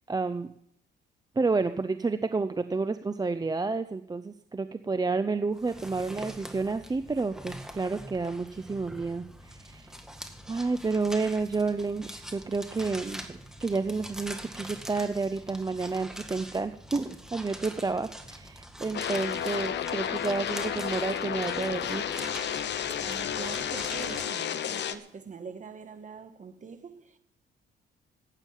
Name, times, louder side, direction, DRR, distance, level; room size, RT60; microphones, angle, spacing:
voice 1, 0.1-0.5 1.4-9.9 10.5-22.0, right 4 dB, 20° right, 0.6 m, -30 dB
sound 1, 5.5-24.3, equal, 5° right, 1.8 m, -44 dB
sound 2, 18.9-24.9, left 9 dB, 65° left, 1.0 m, -32 dB
voice 2, 22.9-27.2, right 5 dB, 40° right, 1.7 m, -43 dB
15.0 x 8.8 x 7.5 m
cardioid pair, 90°, 20 cm